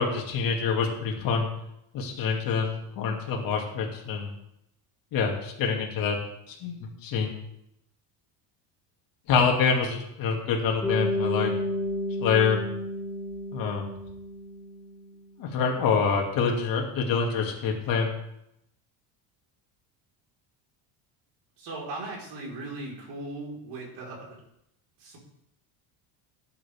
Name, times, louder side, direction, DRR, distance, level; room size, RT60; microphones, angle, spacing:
voice 1, 0.0-1.5 1.9-4.3 5.1-6.2 6.5-7.3 9.3-11.5 12.2-12.6 13.5-13.9 15.4-18.1, left 5 dB, 50° left, 1 dB, 2.5 m, -26 dB
Bass guitar, 10.8-15.1, left 1 dB, 5° left, 5.3 m, -31 dB
voice 2, 21.6-24.4 25.0-25.2, right 2 dB, 60° right, -2 dB, 4.6 m, -38 dB
17.0 x 9.8 x 3.6 m, 0.80 s
cardioid pair, 175°, 45 cm